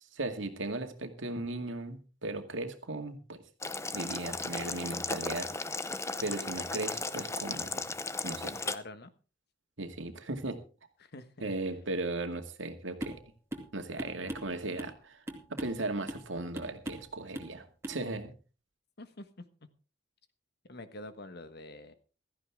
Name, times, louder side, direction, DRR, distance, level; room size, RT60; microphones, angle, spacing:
voice 1, 0.1-3.4 3.9-5.5 6.2-7.9 8.2-8.6 9.8-10.6 11.4-13.2 13.7-15.2 15.5-18.3, right 2 dB, 80° right, 6 dB, 2.2 m, -37 dB
Boiling, 3.6-8.8, left 3 dB, 15° left, 0.7 m, -36 dB
voice 2, 8.5-9.1 11.0-11.5 19.0-19.4 20.7-21.9, left 2 dB, 60° left, 11 dB, 1.4 m, -46 dB
sound 1, 13.0-13.2 13.5-13.7 14.0-15.0 15.3-15.8 16.1-16.3 16.5-17.1 17.3-17.5 17.8-18.0, right 1 dB, 15° right, 2.4 m, -40 dB
16.0 x 14.0 x 3.6 m, 0.34 s
head